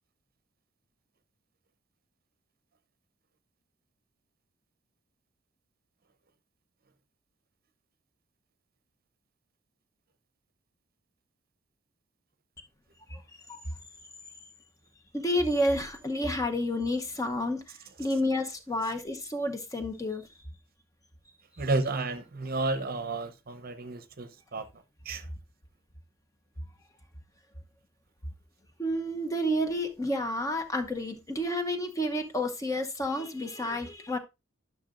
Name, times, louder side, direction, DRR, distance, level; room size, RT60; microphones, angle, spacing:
voice 1, 15.1-17.7 18.0-20.3 28.8-34.2, left 1 dB, 15° left, 0.7 m, -30 dB
voice 2, 21.6-24.7 25.0-25.3, right 3 dB, 45° right, 0.7 m, -31 dB
12.0 x 6.0 x 2.5 m
head